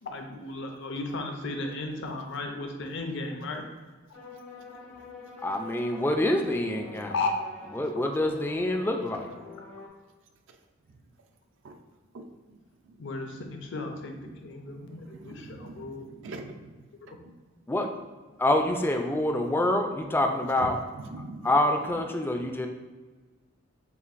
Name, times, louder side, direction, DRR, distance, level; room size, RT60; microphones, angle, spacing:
voice 1, 0.0-3.6 7.1-7.3 13.0-14.1 14.4-16.0 17.1-17.2, left 3 dB, 65° left, 4 dB, 0.6 m, -34 dB
sound 1, 4.1-9.9, left 3 dB, 90° left, 0.9 m, -46 dB
voice 2, 5.4-7.1 7.7-9.3 17.7-17.9 18.4-20.8 21.4-22.7, left 1 dB, 10° left, 4 dB, 0.3 m, -26 dB
voice 3, 15.1-16.7 20.6-20.7 21.1-21.5, right 3 dB, 65° right, 5 dB, 0.4 m, -42 dB
6.8 x 2.4 x 2.5 m, 1.3 s
head